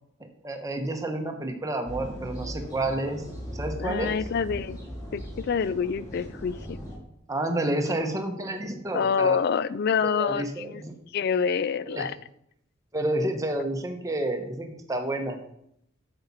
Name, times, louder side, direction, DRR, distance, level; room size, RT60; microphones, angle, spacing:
voice 1, 0.4-3.2 3.5-4.2 7.3-9.4 10.0-10.9 11.8-12.0 12.9-15.4, right 1 dB, 15° right, 4 dB, 1.0 m, -30 dB
sound 1, 1.9-7.0, equal, 15° left, 2.7 m, -38 dB
voice 2, 3.8-4.8 5.1-6.8 8.9-10.8 11.1-12.2, left 6 dB, 50° left, 17 dB, 0.3 m, -27 dB
8.9 x 6.9 x 4.1 m, 0.75 s
head